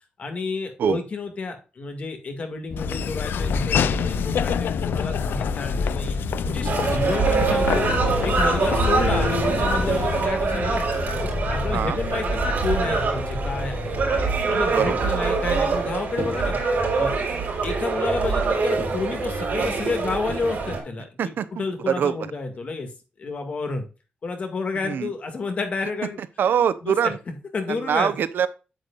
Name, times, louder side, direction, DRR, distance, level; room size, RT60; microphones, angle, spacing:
voice 1, 0.2-6.2 6.5-7.9 8.2-10.9 11.5-14.0 14.5-16.6 16.9-17.1 17.6-22.9 23.2-23.8 24.2-26.2 26.8-28.1, left 3 dB, 40° left, 5 dB, 2.0 m, -30 dB
sound 1, 2.7-14.4, left 3 dB, 60° left, 1.1 m, -29 dB
Laughter / Walk footsteps, 2.8-10.3, left 8 dB, 85° left, 0.5 m, -29 dB
sound 2, 6.6-20.8, right 4 dB, 55° right, 4.2 m, -24 dB
voice 2, 26.4-27.2 27.7-28.5, right 8 dB, 75° right, 14 dB, 0.7 m, -23 dB
9.2 x 8.2 x 2.4 m, 0.31 s
wide cardioid pair, 175°, 3 cm